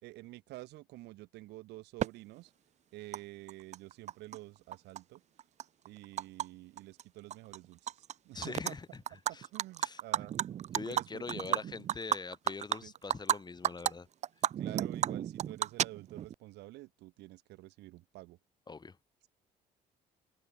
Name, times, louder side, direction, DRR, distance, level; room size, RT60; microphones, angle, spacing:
voice 1, 0.0-2.5 2.9-5.2 5.8-8.8 9.5-10.4 10.9-11.6 12.8-12.9 14.6-18.4, right 18 dB, 85° right, 3.2 m, -49 dB
Animal, 2.0-2.1 3.1-3.2 3.5-4.4 4.7-6.5 6.8-7.0 7.3-8.1 8.4-8.7 9.1-13.4 13.6-13.9 14.2-16.3, right 10 dB, 45° right, 0.5 m, -33 dB
voice 2, 8.3-9.0 9.3-9.5 9.8-10.0 10.7-14.1 18.7-19.0, left 4 dB, 25° left, 5.9 m, -43 dB
open air
cardioid pair, 110°, 17 cm